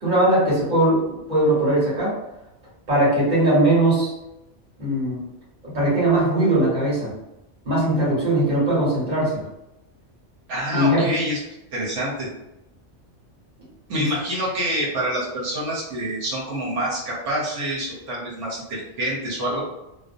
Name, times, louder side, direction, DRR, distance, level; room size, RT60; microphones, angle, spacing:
voice 1, 0.0-2.2 2.9-4.1 4.8-5.2 5.6-7.1 7.6-9.4 10.7-11.1 13.9-14.1, right 1 dB, 40° right, -8 dB, 1.2 m, -20 dB
voice 2, 10.5-11.4 11.7-12.3 13.9-19.6, right 1 dB, 85° right, -5 dB, 1.0 m, -26 dB
2.5 x 2.0 x 2.5 m, 0.91 s
omnidirectional pair, 1.2 m